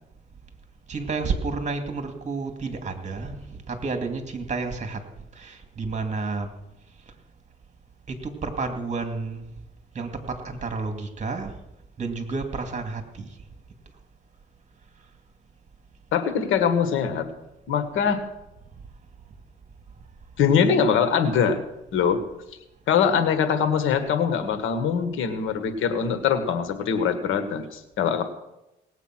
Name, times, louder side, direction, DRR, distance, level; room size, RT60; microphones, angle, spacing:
voice 1, 0.9-5.0 5.3-6.5 8.1-9.4 9.9-11.6 12.0-13.4, right 4 dB, 35° right, 6 dB, 2.4 m, -30 dB
voice 2, 16.1-17.3 17.7-18.2 20.4-21.6 21.9-22.2 22.9-28.2, left 7 dB, 90° left, 8 dB, 1.6 m, -22 dB
18.5 x 8.2 x 6.1 m, 0.90 s
cardioid pair, 90°, 20 cm